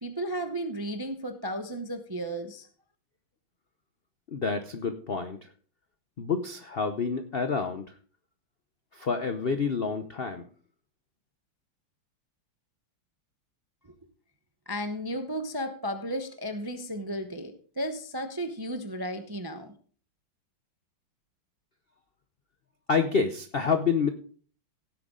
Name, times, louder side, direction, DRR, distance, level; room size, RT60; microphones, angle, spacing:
voice 1, 0.0-2.7 13.8-13.9 14.7-19.7, equal, 30° right, 7 dB, 0.4 m, -34 dB
voice 2, 4.3-5.4 6.2-7.8 8.9-10.4 22.9-24.1, left 5 dB, 60° left, 8 dB, 0.6 m, -28 dB
17.0 x 8.1 x 3.8 m, 0.43 s
omnidirectional pair, 2.2 m